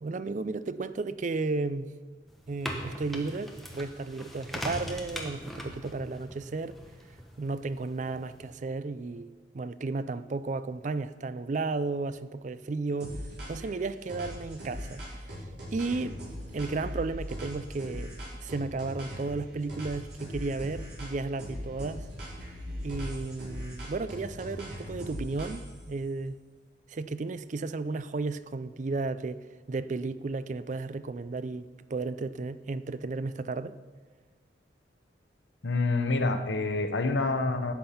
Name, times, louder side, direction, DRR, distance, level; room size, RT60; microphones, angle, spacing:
voice 1, 0.0-1.9 2.5-6.8 7.4-13.2 13.5-15.0 15.3-15.4 15.7-16.2 16.5-22.1 22.8-26.4 26.9-33.7, right 3 dB, 40° right, 0.4 m, -33 dB
sound 1, 2.3-8.5, equal, ahead, 1.3 m, -41 dB
sound 2, 13.0-13.7 14.1-19.4 19.7-21.1 21.4-25.8, equal, 65° right, 4.7 m, -39 dB
voice 2, 35.6-37.7, left 3 dB, 70° left, 1.0 m, -27 dB
13.0 x 8.9 x 5.6 m
head